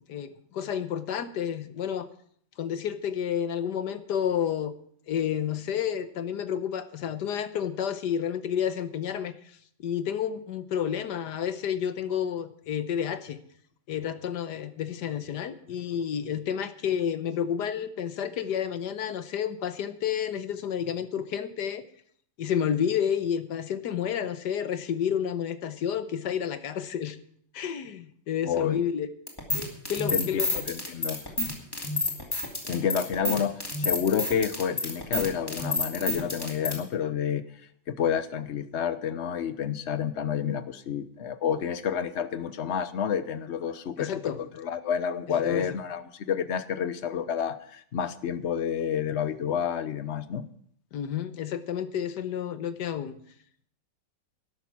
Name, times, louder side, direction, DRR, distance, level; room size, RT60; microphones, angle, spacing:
voice 1, 0.1-2.1 2.6-4.7 5.1-9.4 9.8-13.4 13.9-21.8 22.4-27.2 27.5-29.1 29.9-30.5 44.0-44.4 45.3-45.7 50.9-53.2, left 8 dB, 70° left, 11 dB, 1.5 m, -30 dB
voice 2, 28.4-28.8 30.1-31.2 32.6-37.4 37.9-44.1 44.4-50.5, left 8 dB, 50° left, 12 dB, 0.8 m, -29 dB
sound 1, 29.3-36.8, left 2 dB, 10° left, 2.5 m, -29 dB
12.5 x 11.5 x 6.0 m, 0.63 s
omnidirectional pair, 2.0 m